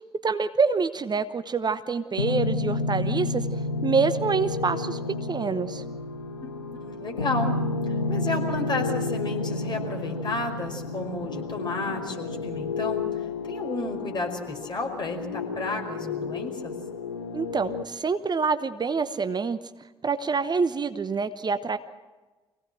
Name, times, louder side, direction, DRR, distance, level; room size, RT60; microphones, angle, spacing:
voice 1, 0.2-3.5 3.8-5.0 5.3-5.8 17.3-19.6 20.0-21.8, right 5 dB, 35° right, 11 dB, 1.0 m, -26 dB
sound 1, 2.2-17.8, left 3 dB, 85° left, 0.7 m, -31 dB
voice 2, 6.4-7.6 7.9-16.7, left 2 dB, 35° left, 2 dB, 5.2 m, -32 dB
25.5 x 17.5 x 7.7 m, 1.2 s
figure-of-eight pair, 40°, 13 cm